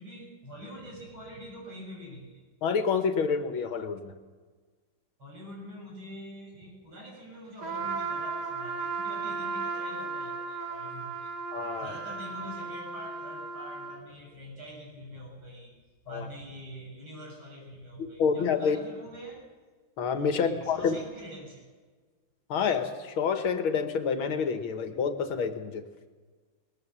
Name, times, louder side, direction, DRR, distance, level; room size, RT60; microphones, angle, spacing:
voice 1, 0.0-2.4 5.2-11.3 11.8-15.7 16.0-19.4 20.3-21.7, equal, 70° right, -2 dB, 8.2 m, -45 dB
voice 2, 2.6-4.1 11.5-11.9 16.1-16.3 18.0-18.8 20.0-21.0 22.5-25.8, left 6 dB, 75° left, 8 dB, 2.2 m, -28 dB
Trumpet, 7.6-14.0, right 4 dB, 50° right, 2.3 m, -35 dB
20.5 x 19.5 x 7.4 m, 1.4 s
omnidirectional pair, 2.3 m